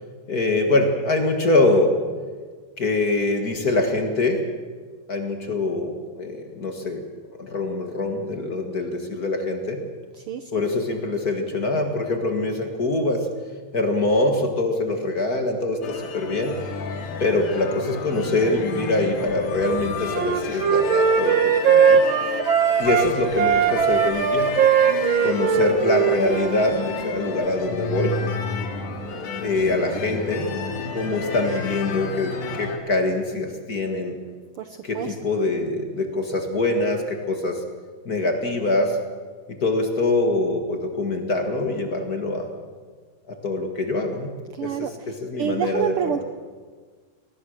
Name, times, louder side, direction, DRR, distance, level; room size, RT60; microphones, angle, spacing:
voice 1, 0.3-2.0 2.8-4.4 5.1-7.0 7.4-9.8 10.5-13.3 13.7-16.6 17.2-22.0 22.8-24.6 25.2-28.2 29.4-30.5 30.9-34.2 34.8-37.6 38.1-39.0 39.5-42.5 43.3-44.3 44.6-46.2, left 2 dB, 35° left, 4 dB, 1.8 m, -24 dB
voice 2, 10.2-10.5 25.5-25.7 29.7-29.8 34.6-35.1 44.5-46.2, right 9 dB, 80° right, 8 dB, 1.2 m, -29 dB
sound 1, 15.8-32.8, left 4 dB, 80° left, 3.4 m, -31 dB
Wind instrument woodwind instrument, 20.1-23.1 23.4-26.7, right 7 dB, 55° right, 1.4 m, -19 dB
22.5 x 19.0 x 6.5 m, 1.5 s
omnidirectional pair, 3.6 m